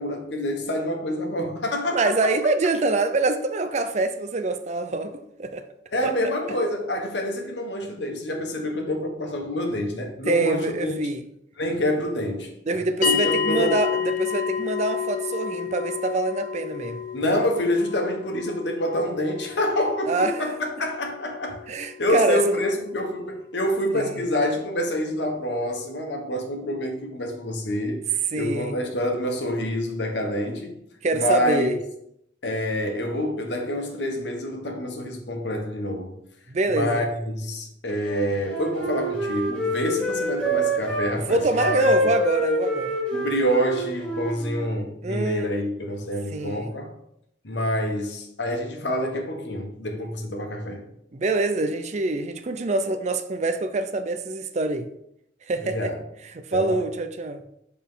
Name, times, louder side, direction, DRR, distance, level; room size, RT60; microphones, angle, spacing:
voice 1, 0.0-2.3 5.9-10.9 11.6-12.5 13.0-13.8 17.1-21.6 22.0-30.8 31.1-31.7 32.4-36.2 36.7-41.9 43.1-46.9 47.4-50.9 55.6-56.0 56.5-56.8, left 1 dB, 70° left, 1.3 m, -27 dB
voice 2, 1.9-5.6 6.0-6.1 10.3-11.2 12.7-17.0 20.1-20.5 21.7-22.5 23.9-24.1 28.3-28.7 31.0-31.8 36.5-37.1 41.3-43.0 45.0-45.5 46.3-46.7 51.1-54.9 55.5-55.9 56.3-57.4, right 2 dB, 40° right, 0.4 m, -25 dB
sound 1, 13.0-23.6, left 8 dB, 45° left, 0.7 m, -30 dB
Wind instrument woodwind instrument, 37.9-41.1 41.5-44.7, right 1 dB, 10° left, 1.7 m, -26 dB
7.4 x 4.1 x 3.8 m
head